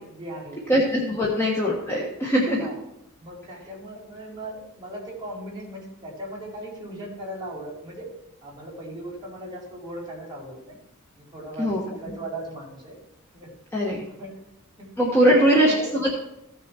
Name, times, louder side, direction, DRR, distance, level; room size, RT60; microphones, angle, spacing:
voice 1, 0.1-0.6 1.2-1.3 1.8-1.9 2.6-2.8 3.2-8.0 8.4-10.8 11.2-13.0 13.3-13.5 14.2-14.4 14.8-14.9 15.2-15.9, right 1 dB, 20° right, -5 dB, 4.2 m, -38 dB
voice 2, 0.7-2.7 11.6-11.8 13.7-14.0 15.0-16.2, equal, 10° left, -4 dB, 1.4 m, -21 dB
15.5 x 6.5 x 4.5 m, 0.85 s
head